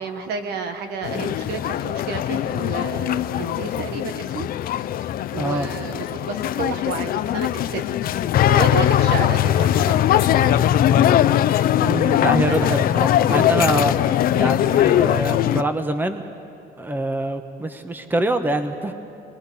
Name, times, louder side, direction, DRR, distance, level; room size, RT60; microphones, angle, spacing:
voice 1, 0.0-4.8 5.3-7.9 8.5-10.6 12.4-12.8, right 5 dB, 75° right, 6 dB, 1.6 m, -31 dB
sound 1, 1.0-15.6, left 11 dB, 60° left, 0.5 m, -20 dB
voice 2, 5.4-5.7 11.8-13.9 14.3-16.2 16.8-18.9, right 1 dB, 10° right, 8 dB, 1.1 m, -24 dB
29.5 x 21.0 x 4.2 m, 2.6 s
cardioid pair, 110°, 17 cm